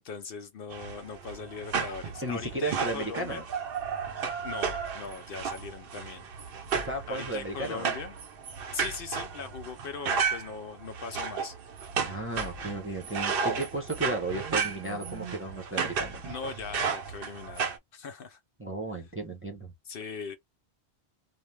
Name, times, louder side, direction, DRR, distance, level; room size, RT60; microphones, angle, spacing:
voice 1, 0.0-3.4 4.4-6.2 7.1-8.2 8.7-11.6 16.2-18.4 19.8-20.4, left 5 dB, 65° left, 0.7 m, -40 dB
sound 1, 0.7-17.8, right 6 dB, 65° right, 0.8 m, -33 dB
voice 2, 2.2-3.4 6.7-7.9 12.0-16.2 18.6-19.7, right 2 dB, 15° right, 0.7 m, -34 dB
2.5 x 2.1 x 3.2 m
omnidirectional pair, 1.1 m